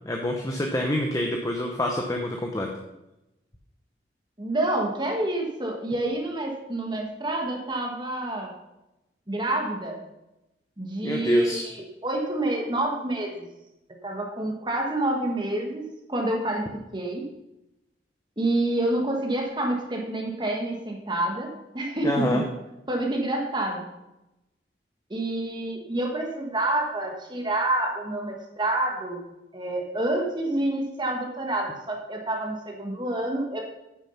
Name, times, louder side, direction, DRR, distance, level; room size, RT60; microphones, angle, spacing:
voice 1, 0.0-2.7 11.0-11.6 22.0-22.4, left 1 dB, 20° left, 1 dB, 0.9 m, -26 dB
voice 2, 4.4-8.5 9.3-10.0 10.8-13.5 14.0-15.8 16.1-17.3 18.4-22.4 22.9-23.9 25.1-29.2 29.5-33.6, right 1 dB, 25° right, 1 dB, 1.5 m, -28 dB
9.6 x 7.2 x 5.7 m, 0.94 s
head